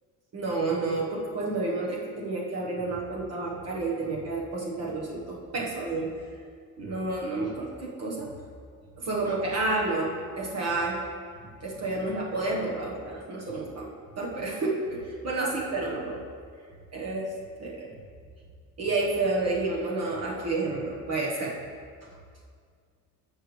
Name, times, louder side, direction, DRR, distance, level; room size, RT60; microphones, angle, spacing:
voice 1, 0.3-6.1 6.8-8.3 9.0-11.0 11.6-13.9 14.2-16.2 16.9-17.3 17.6-17.9 18.8-21.5, right 2 dB, 45° right, -4 dB, 1.4 m, -30 dB
15.0 x 6.6 x 3.3 m, 2.1 s
cardioid pair, 160°, 37 cm